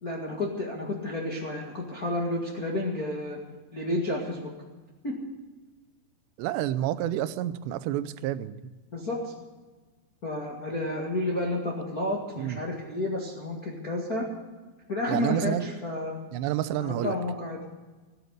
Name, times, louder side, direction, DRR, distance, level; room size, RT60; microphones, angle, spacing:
voice 1, 0.0-3.4 3.7-4.5 5.0-5.2 8.9-9.3 10.2-14.2 14.9-16.2 16.8-17.6, left 1 dB, 50° left, -3 dB, 1.1 m, -31 dB
voice 2, 6.4-8.7 12.4-12.6 15.1-15.7 16.3-17.2, right 12 dB, 80° right, 14 dB, 2.7 m, -29 dB
17.5 x 9.5 x 8.1 m, 1.3 s
omnidirectional pair, 5.2 m